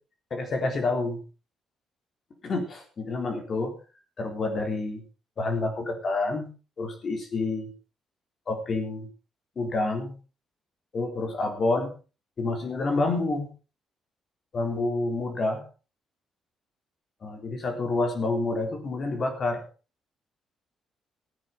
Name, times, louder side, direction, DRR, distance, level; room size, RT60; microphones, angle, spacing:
voice 1, 0.3-1.2 2.4-3.8 4.2-5.0 5.4-6.5 6.8-7.7 8.5-9.1 9.6-10.2 10.9-12.0 12.4-13.5 14.5-15.6 17.2-19.6, left 2 dB, 45° left, 5 dB, 3.7 m, -28 dB
16.0 x 9.3 x 5.2 m, 0.36 s
cardioid pair, 90°, 0 cm